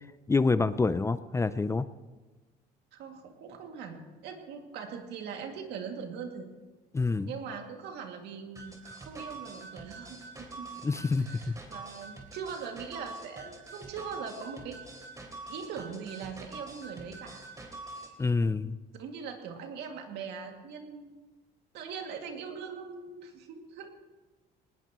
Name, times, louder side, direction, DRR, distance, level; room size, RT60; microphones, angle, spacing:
voice 1, 0.3-1.9 6.9-7.3 10.8-11.5 18.2-18.7, left 3 dB, 15° left, 14 dB, 0.5 m, -27 dB
voice 2, 2.9-6.5 7.2-10.7 11.2-14.8 15.5-17.4 18.9-21.1 21.7-23.9, right 6 dB, 80° right, 3 dB, 2.4 m, -41 dB
sound 1, 8.6-18.1, right 3 dB, 20° right, 3.2 m, -45 dB
19.5 x 19.0 x 3.1 m, 1.2 s
cardioid pair, 110°, 17 cm